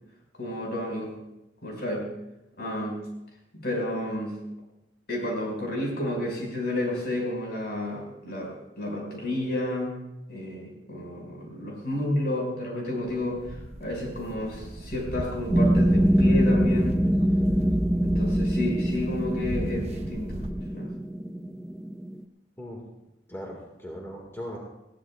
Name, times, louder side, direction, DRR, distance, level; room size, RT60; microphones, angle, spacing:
voice 1, 0.4-1.1 1.6-2.1 2.6-3.0 3.5-4.3 5.1-9.9 10.3-16.9 18.0-20.9, left 1 dB, 60° left, -1 dB, 5.6 m, -31 dB
sound 1, 13.0-20.5, right 1 dB, 35° right, 0.8 m, -37 dB
sound 2, 15.5-22.2, equal, 5° right, 0.5 m, -24 dB
voice 2, 23.3-24.6, equal, 15° left, -1 dB, 1.9 m, -38 dB
20.5 x 16.0 x 2.4 m, 0.91 s
head